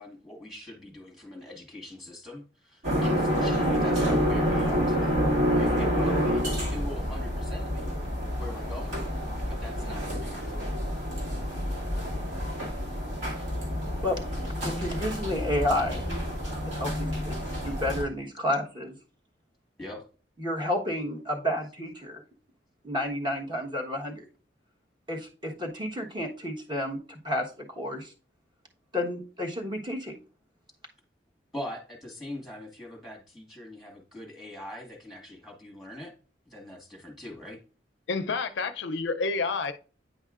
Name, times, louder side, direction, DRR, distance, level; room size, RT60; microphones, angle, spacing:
voice 1, 0.0-5.2 5.5-8.0 8.4-9.2 9.5-10.7 19.8-20.1 31.5-36.1 36.5-37.6, left 1 dB, ahead, 1.6 m, -42 dB
sound 1, 2.8-18.0, equal, 75° right, 2.4 m, -28 dB
voice 2, 14.6-16.0 16.7-17.4 17.6-18.9 20.4-22.2 22.8-24.2 25.1-28.1 28.9-30.1, left 1 dB, 25° right, 1.2 m, -31 dB
voice 3, 38.1-39.7, left 4 dB, 70° left, 0.5 m, -29 dB
9.2 x 5.3 x 2.4 m
head